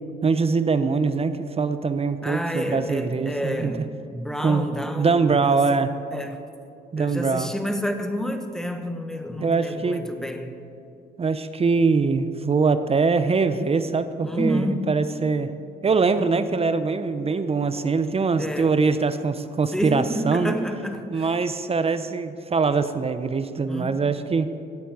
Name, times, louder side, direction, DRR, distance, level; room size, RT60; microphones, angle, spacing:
voice 1, 0.2-3.7 4.4-4.7 5.0-5.9 6.9-7.5 9.4-10.0 11.2-15.5 15.8-20.5 21.1-24.5, right 4 dB, 30° right, 0.6 m, -23 dB
voice 2, 2.2-5.8 6.1-6.4 7.0-10.6 14.2-14.9 16.1-16.5 18.4-18.7 19.7-21.3 23.7-24.0, equal, ahead, 1.1 m, -29 dB
16.5 x 8.3 x 4.7 m
cardioid pair, 90°, 20 cm